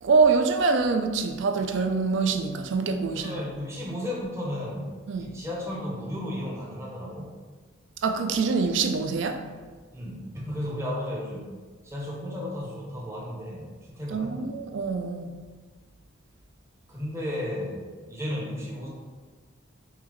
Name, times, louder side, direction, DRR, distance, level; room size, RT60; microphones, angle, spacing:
voice 1, 0.0-3.3 5.1-5.3 8.0-9.4 14.1-15.4, right 4 dB, 60° right, 0.3 m, -25 dB
voice 2, 3.1-7.3 9.4-9.5 9.9-11.5 11.8-14.6 16.9-18.9, left 1 dB, 15° right, 0.6 m, -34 dB
5.5 x 2.2 x 3.0 m
head